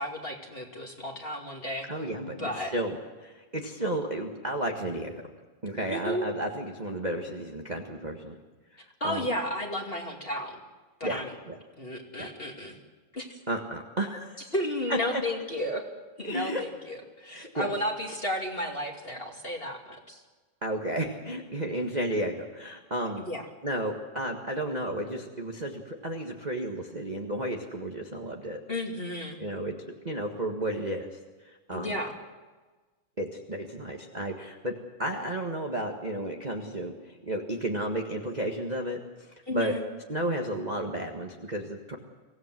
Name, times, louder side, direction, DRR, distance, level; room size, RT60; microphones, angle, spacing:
voice 1, 0.0-1.9 2.3-2.7 5.9-6.3 9.0-10.6 11.0-11.4 11.8-12.8 13.1-13.2 14.5-15.8 16.2-20.2 23.2-23.4 28.7-29.4 31.7-32.1 39.5-39.8, left 1 dB, 20° left, 2 dB, 2.2 m, -33 dB
voice 2, 1.9-5.2 5.6-8.4 9.0-9.3 11.0-11.6 12.2-12.3 13.5-14.4 14.9-15.2 16.2-16.6 17.3-17.7 20.6-23.2 23.6-28.6 29.4-29.8 30.0-32.0 33.2-39.7 40.1-41.9, right 1 dB, 25° right, 1 dB, 0.9 m, -33 dB
25.0 x 17.0 x 7.7 m, 1.3 s
omnidirectional pair, 3.4 m